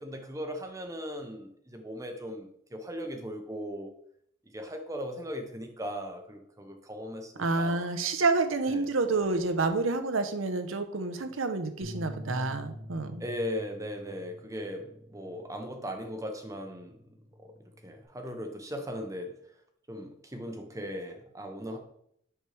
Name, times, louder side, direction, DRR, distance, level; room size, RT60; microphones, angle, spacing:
voice 1, 0.0-3.9 4.5-7.9 8.7-8.9 13.2-16.9 17.4-17.5 17.8-19.3 19.9-21.8, equal, 15° right, 5 dB, 0.7 m, -38 dB
voice 2, 7.4-13.2, right 3 dB, 85° right, 8 dB, 0.8 m, -28 dB
sound 1, 11.8-18.1, equal, 65° left, 1.9 m, -47 dB
6.5 x 6.1 x 3.3 m, 0.69 s
head